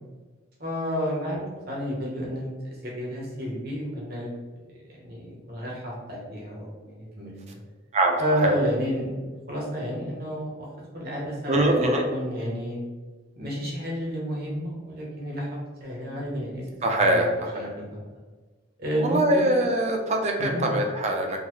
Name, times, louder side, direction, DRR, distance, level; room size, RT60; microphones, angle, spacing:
voice 1, 0.6-4.3 4.9-7.6 8.2-9.2 9.5-10.7 10.9-12.8 13.4-15.5 15.8-16.7 17.0-18.0 18.8-19.7 20.4-20.7, equal, 55° right, -3 dB, 1.0 m, -31 dB
voice 2, 7.9-8.5 11.5-12.0 16.8-17.7 19.0-21.4, right 1 dB, 35° right, 2 dB, 0.5 m, -23 dB
3.8 x 2.1 x 3.0 m, 1.3 s
head